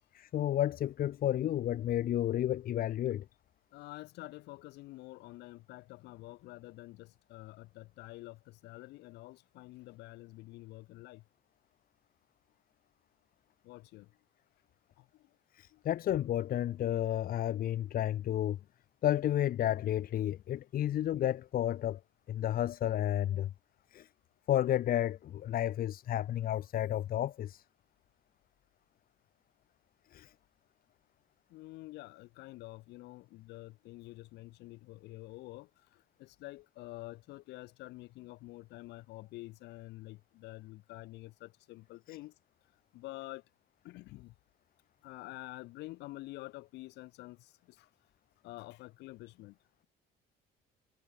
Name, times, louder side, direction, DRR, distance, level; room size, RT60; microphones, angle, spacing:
voice 1, 0.1-3.2 15.5-18.6 19.0-22.0 22.3-23.5 23.9-24.1 24.5-27.6 30.1-30.3, left 12 dB, 60° left, 1.5 m, -31 dB
voice 2, 3.7-11.2 13.6-14.1 15.0-15.3 15.7-15.8 20.9-21.0 31.5-42.3 42.9-43.4 43.8-44.3 45.0-47.9 48.4-49.6, left 19 dB, 85° left, 5.3 m, -48 dB
cardioid pair, 110°, 17 cm